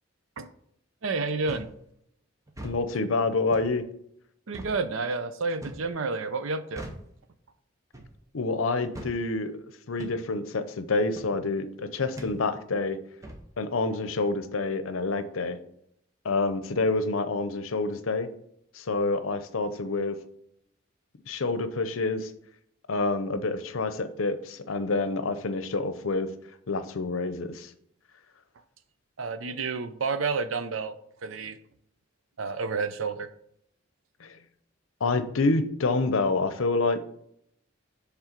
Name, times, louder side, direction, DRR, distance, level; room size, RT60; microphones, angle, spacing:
voice 1, 1.0-1.7 4.5-6.8 29.2-31.0 31.2-31.6 32.4-33.3, right 4 dB, 80° right, 11 dB, 0.6 m, -30 dB
sound 1, 1.5-1.8 2.5-2.8 3.5-3.7 4.5-4.8 5.6-5.9 6.8-7.1 7.9-8.2 8.9-9.2 10.0-10.2 11.2-11.3 12.2-12.4 13.2-13.5, right 1 dB, 15° right, 0.8 m, -40 dB
voice 2, 2.6-3.8 8.3-9.6 9.9-13.0 13.6-15.6 16.2-18.3 18.7-20.2 21.3-22.3 22.9-26.3 26.7-27.7 34.2-34.3 35.0-37.0, left 3 dB, 90° left, 11 dB, 0.7 m, -27 dB
7.4 x 3.4 x 5.1 m, 0.71 s
head